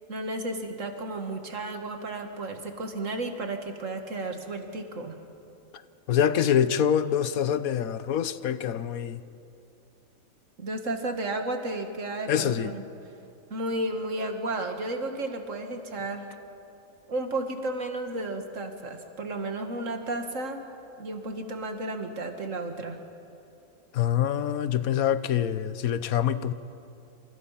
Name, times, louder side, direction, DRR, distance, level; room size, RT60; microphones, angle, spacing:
voice 1, 0.1-5.2 10.6-12.8 13.5-16.3 17.1-20.6 21.0-23.0, right 2 dB, 65° right, 5 dB, 2.2 m, -33 dB
voice 2, 6.1-9.2 12.3-12.7 23.9-26.5, left 9 dB, 80° left, 14 dB, 1.3 m, -25 dB
28.0 x 27.5 x 5.8 m, 2.7 s
omnidirectional pair, 1.5 m